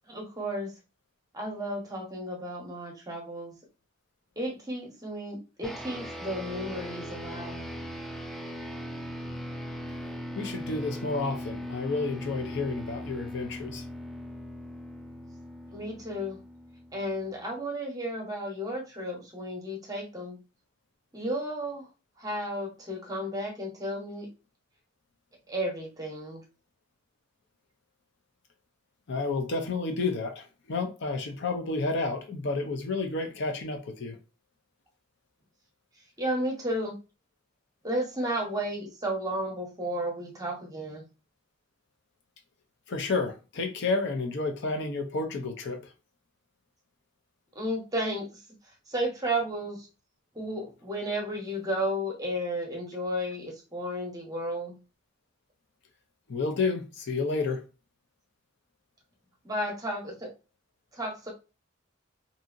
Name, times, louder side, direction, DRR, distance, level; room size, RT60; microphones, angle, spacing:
voice 1, 0.1-0.7 1.3-3.5 4.4-7.7 15.7-16.4 16.9-20.4 21.1-21.9 22.2-24.3 25.5-26.4 36.2-36.9 37.8-41.1 47.5-48.3 48.9-49.9 50.3-54.8 59.4-60.3 60.9-61.3, equal, 20° right, 0.8 m, -33 dB
sound 1, 5.6-17.3, equal, ahead, 0.3 m, -39 dB
voice 2, 10.3-13.8 29.1-34.2 42.9-45.9 56.3-57.6, left 3 dB, 60° left, 0.5 m, -30 dB
2.7 x 2.7 x 2.4 m
head